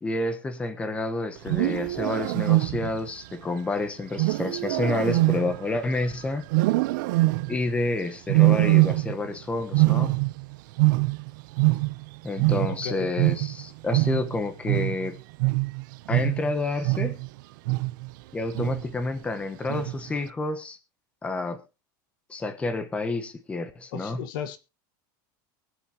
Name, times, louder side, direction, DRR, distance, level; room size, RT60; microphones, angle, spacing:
voice 1, 0.0-6.4 7.5-10.1 12.2-15.2 16.1-17.2 18.3-20.8 21.2-21.6 22.3-24.3, left 2 dB, 10° left, 8 dB, 1.1 m, -29 dB
Wild animals, 1.4-3.1 4.2-6.0 6.5-7.7 8.3-9.3 9.6-12.1 12.4-17.3 17.7-18.1 18.5-19.0 19.7-20.1, right 21 dB, 70° right, 0.6 m, -23 dB
voice 2, 12.7-13.1 23.9-24.6, left 8 dB, 80° left, 10 dB, 1.5 m, -34 dB
23.0 x 7.9 x 2.9 m, 0.30 s
supercardioid pair, 160°, 11 cm